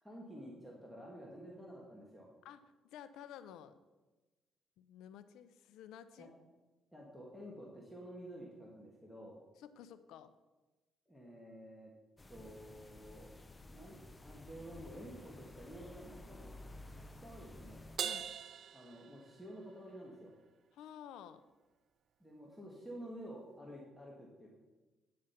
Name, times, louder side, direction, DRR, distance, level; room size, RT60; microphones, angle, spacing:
voice 1, 0.0-2.3 6.2-6.3 6.9-9.4 11.1-11.9 12.3-13.4 13.7-16.5 16.8-17.9 18.7-20.3 22.2-24.5, equal, ahead, -3 dB, 1.7 m, -51 dB
voice 2, 2.4-3.8 4.8-6.3 9.6-10.3 18.0-18.3 20.7-21.4, left 10 dB, 85° left, 13 dB, 0.5 m, -52 dB
sound 1, 12.2-18.0, left 1 dB, 20° left, 0.6 m, -53 dB
Crash cymbal, 18.0-19.7, right 8 dB, 60° right, 0.4 m, -41 dB
9.6 x 5.1 x 5.7 m, 1.2 s
cardioid pair, 85°, 0 cm